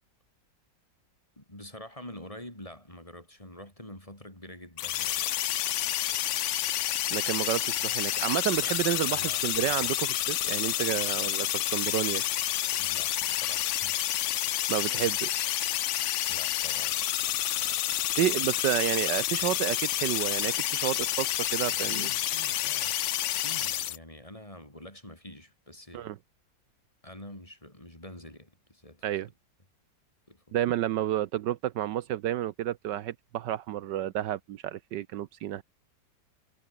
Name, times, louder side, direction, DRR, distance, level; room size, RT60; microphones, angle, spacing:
voice 1, 1.4-5.3 9.1-10.0 12.8-14.0 14.9-15.1 16.3-17.0 19.4-19.6 21.7-23.0 23.3-26.1 27.0-29.2 30.3-30.6, left 1 dB, 15° left, 5.3 m, -47 dB
sound 1, 4.8-24.0, left 13 dB, 90° left, 0.6 m, -29 dB
voice 2, 7.1-12.2 14.7-15.5 18.2-22.1 25.9-26.2 29.0-29.3 30.5-35.6, right 12 dB, 75° right, 1.4 m, -30 dB
omnidirectional pair, 1.9 m